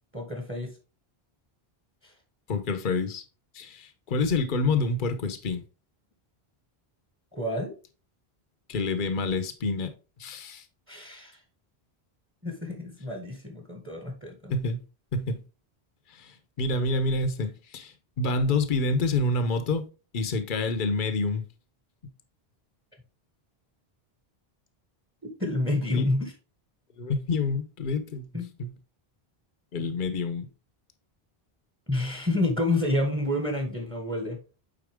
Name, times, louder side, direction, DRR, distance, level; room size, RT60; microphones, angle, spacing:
voice 1, 0.1-0.7 7.3-7.8 10.9-11.4 12.4-14.5 25.2-26.3 28.3-28.5 31.9-34.4, left 2 dB, 10° right, 1.5 m, -29 dB
voice 2, 2.5-3.2 3.5-5.6 8.7-9.9 10.2-10.6 14.5-14.8 15.1-15.4 16.1-16.3 16.6-19.9 20.1-21.4 25.9-26.0 27.0-28.3 28.6-28.7 29.7-30.5, left 3 dB, 55° left, 1.0 m, -27 dB
8.8 x 4.2 x 3.5 m
omnidirectional pair, 1.1 m